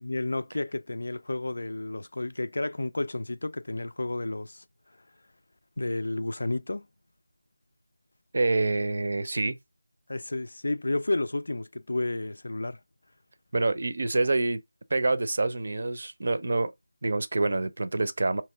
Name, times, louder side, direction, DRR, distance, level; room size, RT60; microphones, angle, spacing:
voice 1, 0.0-4.6 5.8-6.9 10.1-12.8, left 2 dB, 65° left, 0.4 m, -31 dB
voice 2, 8.3-9.6 13.5-14.6 14.9-16.7 17.0-18.4, right 2 dB, 55° right, 0.5 m, -26 dB
3.1 x 2.9 x 4.4 m
figure-of-eight pair, 165°, 0 cm